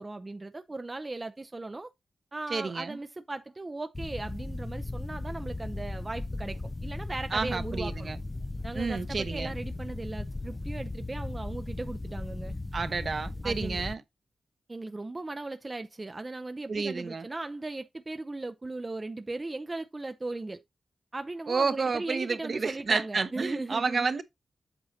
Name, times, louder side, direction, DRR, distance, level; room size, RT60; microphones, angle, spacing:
voice 1, 0.0-1.9 2.3-8.1 8.6-12.5 13.4-13.8 14.7-20.6 21.1-24.1, right 2 dB, 30° right, 0.5 m, -38 dB
voice 2, 2.5-3.0 7.3-8.2 8.7-9.5 12.7-14.0 16.7-17.3 21.5-24.2, right 4 dB, 55° right, 0.9 m, -30 dB
sound 1, 4.0-13.9, left 2 dB, 25° left, 0.4 m, -37 dB
8.1 x 6.8 x 2.8 m
cardioid pair, 70°, 0 cm